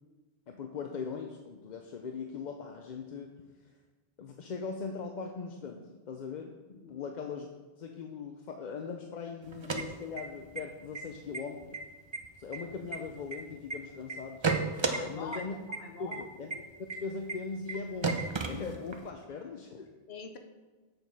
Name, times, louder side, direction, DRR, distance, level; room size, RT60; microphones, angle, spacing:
voice 1, 0.5-3.3 4.2-7.5 7.8-11.8 12.4-14.5 15.1-15.6 16.0-16.5 16.8-18.1 18.4-19.9, left 5 dB, 50° left, 3 dB, 0.7 m, -40 dB
sound 1, 9.5-10.6 10.9-11.0 11.3-11.8 12.1-13.7 14.1-15.0 15.3-15.4 15.7-15.8 16.1-16.2 16.5-16.6 16.9-17.0 17.3-17.4 17.7-17.8 18.0-19.1, right 4 dB, 30° right, 0.6 m, -32 dB
voice 2, 14.8-15.4 15.7-16.3 20.1-20.4, left 4 dB, 80° left, 6 dB, 1.1 m, -44 dB
7.4 x 6.6 x 4.7 m, 1.3 s
omnidirectional pair, 1.0 m